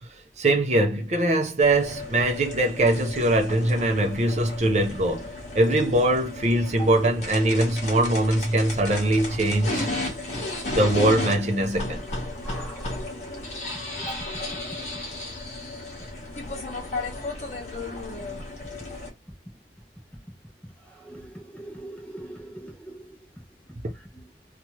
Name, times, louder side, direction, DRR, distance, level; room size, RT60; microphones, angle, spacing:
voice 1, 0.4-9.9 10.7-12.0 23.8-23.9, right 1 dB, 40° right, 0.5 m, -22 dB
sound 1, 1.6-19.1, left 2 dB, 40° left, 1.0 m, -34 dB
voice 2, 12.4-12.9 14.0-14.2 21.1-23.0, right 1 dB, 5° left, 0.6 m, -40 dB
2.8 x 2.4 x 2.9 m
head